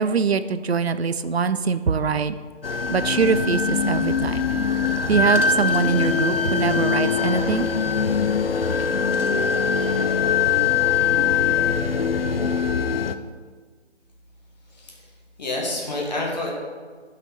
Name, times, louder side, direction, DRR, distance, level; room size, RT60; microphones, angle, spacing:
voice 1, 0.0-2.4 2.9-4.4 5.1-7.7, right 5 dB, 60° right, 12 dB, 0.5 m, -23 dB
sound 1, 2.6-13.1, left 6 dB, 55° left, 0.5 m, -22 dB
voice 2, 14.7-15.1 15.4-16.5, left 2 dB, 40° left, -2 dB, 1.7 m, -28 dB
8.9 x 5.8 x 4.1 m, 1.6 s
figure-of-eight pair, 155°, 35 cm